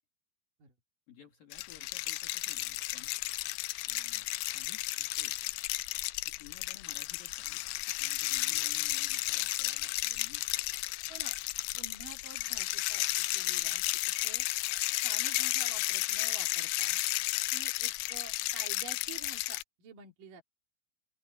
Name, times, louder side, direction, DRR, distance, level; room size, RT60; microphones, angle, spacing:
voice 1, 1.1-3.2 3.8-5.4 6.2-11.0, left 8 dB, 55° left, 4.6 m, -57 dB
sound 1, 1.5-19.6, left 20 dB, 85° left, 2.6 m, -33 dB
voice 2, 11.8-13.8 14.2-14.5 15.0-17.0 17.5-20.4, right 6 dB, 55° right, 4.3 m, -50 dB
open air
omnidirectional pair, 4.8 m